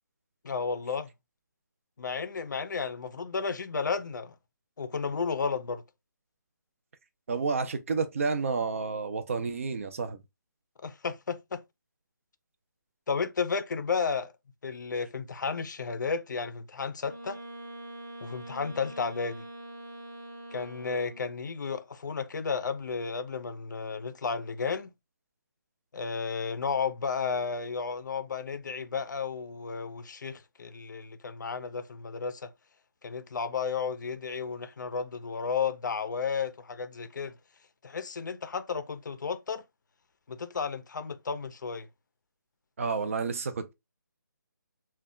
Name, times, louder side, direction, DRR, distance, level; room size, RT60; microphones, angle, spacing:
voice 1, 0.4-1.1 2.0-4.3 4.8-5.8 10.8-11.6 13.1-14.3 14.6-17.4 18.2-19.4 20.5-24.9 25.9-32.5 33.0-37.3 37.8-39.6 40.3-41.9, left 5 dB, 65° left, 0.4 m, -33 dB
voice 2, 7.3-10.2 42.8-43.7, right 4 dB, 40° right, 0.4 m, -30 dB
Wind instrument woodwind instrument, 17.0-21.4, right 1 dB, 15° right, 0.7 m, -44 dB
2.2 x 2.0 x 3.6 m
hypercardioid pair, 165°, 11 cm